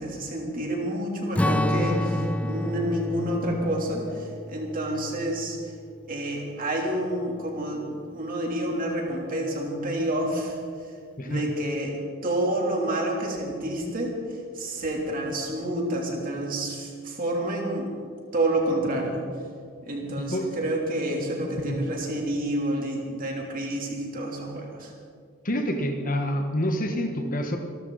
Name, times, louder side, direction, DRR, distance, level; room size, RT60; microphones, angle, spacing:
voice 1, 0.0-5.6 6.1-10.6 11.2-14.1 14.5-17.9 18.3-19.2 19.9-24.9, right 1 dB, 40° right, -1 dB, 3.3 m, -29 dB
Strum, 1.4-6.0, left 1 dB, 5° left, 0.3 m, -29 dB
voice 2, 20.2-20.5 21.6-21.8 25.4-27.6, equal, 40° left, 4 dB, 1.3 m, -27 dB
27.0 x 12.5 x 4.1 m, 2.2 s
head